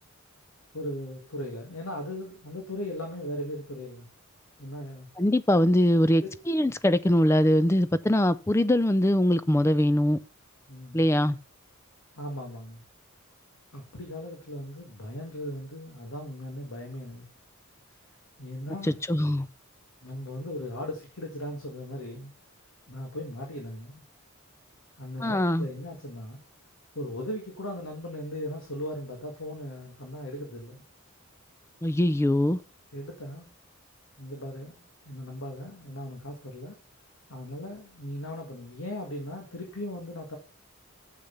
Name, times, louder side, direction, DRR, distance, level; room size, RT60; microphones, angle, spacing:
voice 1, 0.7-4.1 4.6-5.1 6.2-6.3 10.7-11.0 12.1-12.8 13.7-17.2 17.9-18.0 18.4-19.0 20.0-22.3 22.9-24.0 25.0-26.4 26.9-30.8 32.9-33.5 34.2-36.8 37.3-40.4, left 1 dB, 70° left, 1.8 m, -38 dB
voice 2, 5.2-10.2 10.9-11.4 18.8-19.5 25.2-25.7 31.8-32.6, left 1 dB, 10° left, 0.3 m, -22 dB
7.0 x 6.6 x 5.7 m
head